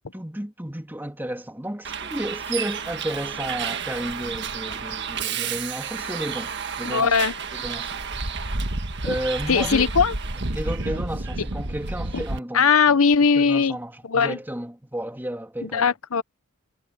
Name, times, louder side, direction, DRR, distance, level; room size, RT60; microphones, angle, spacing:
voice 1, 0.0-6.5 6.8-7.2 7.5-8.0 9.0-9.9 10.5-12.7 13.4-15.9, right 1 dB, 10° right, 2.6 m, -32 dB
Bus, 1.8-12.4, right 4 dB, 55° right, 1.6 m, -30 dB
voice 2, 6.8-7.3 9.0-9.1 9.5-10.1 11.4-11.5 12.1-12.2 12.5-13.8 14.0-14.4 15.6-16.2, left 6 dB, 80° left, 0.9 m, -20 dB
head